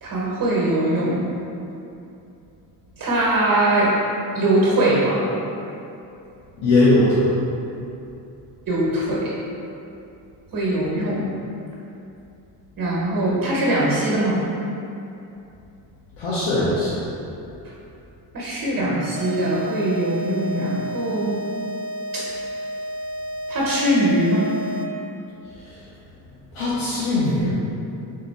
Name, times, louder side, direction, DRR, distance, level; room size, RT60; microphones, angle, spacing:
voice 1, 0.0-1.2 3.0-3.9 4.3-5.3 8.7-9.3 10.5-11.3 12.8-14.4 18.3-21.3 22.1-22.2 23.5-24.5, right 1 dB, 50° right, -5 dB, 1.0 m, -21 dB
voice 2, 6.6-7.3 16.2-17.1 25.7-25.8 26.5-27.5, left 2 dB, 85° left, -10 dB, 0.9 m, -20 dB
sound 1, 19.2-25.1, right 1 dB, 35° right, 0.5 m, -31 dB
3.6 x 2.8 x 4.1 m, 2.8 s
cardioid pair, 80°, 45 cm